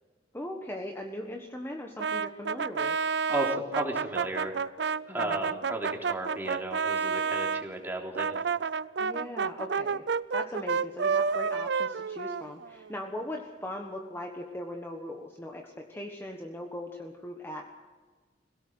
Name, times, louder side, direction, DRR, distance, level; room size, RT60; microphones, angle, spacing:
voice 1, 0.3-3.0 5.1-5.6 9.0-10.0 10.3-17.7, left 1 dB, 15° left, 2 dB, 1.3 m, -39 dB
Brass instrument, 2.0-7.6 8.1-12.9, right 5 dB, 75° right, 0.5 m, -30 dB
voice 2, 3.3-4.7 5.1-8.4, right 1 dB, 10° right, 0 dB, 3.4 m, -34 dB
25.0 x 17.5 x 6.4 m, 1.4 s
head